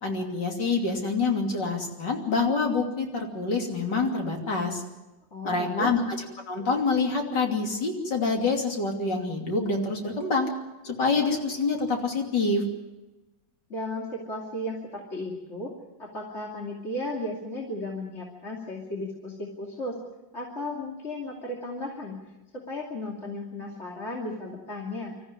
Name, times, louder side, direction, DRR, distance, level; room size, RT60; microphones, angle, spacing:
voice 1, 0.0-4.8 5.4-6.2 6.5-10.5 10.8-12.6, left 3 dB, 70° left, 2 dB, 3.5 m, -26 dB
voice 2, 5.3-5.9 13.7-15.7 16.0-19.9 20.3-22.2 22.5-25.1, left 1 dB, 35° left, -2 dB, 3.0 m, -35 dB
26.0 x 14.0 x 9.7 m, 1.1 s
omnidirectional pair, 2.0 m